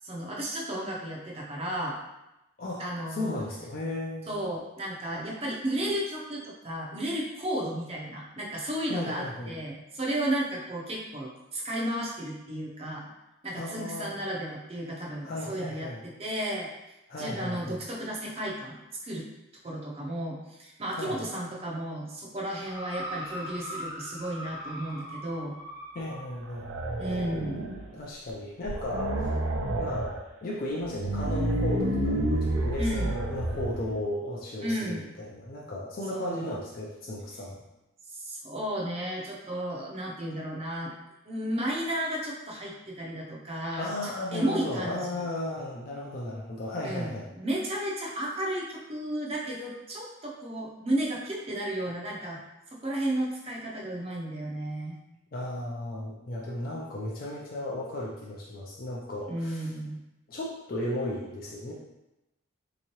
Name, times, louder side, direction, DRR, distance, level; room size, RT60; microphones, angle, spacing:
voice 1, 0.0-2.0 2.8-3.4 4.3-13.1 13.4-16.7 17.2-19.3 19.6-25.6 27.0-27.7 32.8-33.1 34.6-35.0 36.1-36.6 38.1-40.9 41.3-45.2 46.8-52.4 52.7-54.9 59.3-60.0, right 1 dB, 30° right, -3 dB, 0.5 m, -33 dB
voice 2, 3.1-4.4 8.9-9.6 13.5-14.2 15.2-16.1 17.1-17.8 20.9-21.2 25.9-26.8 27.9-29.3 29.7-30.1 30.4-37.6 43.7-47.3 55.3-59.7 60.3-61.7, left 1 dB, 45° left, -5 dB, 0.4 m, -35 dB
sound 1, 22.6-26.3 27.1-27.2, equal, 70° left, 1.0 m, -40 dB
sound 2, 26.4-27.9 28.3-28.4 28.6-30.2 30.8-33.9, right 1 dB, 80° right, 0.5 m, -30 dB
3.5 x 3.0 x 2.9 m, 0.93 s
head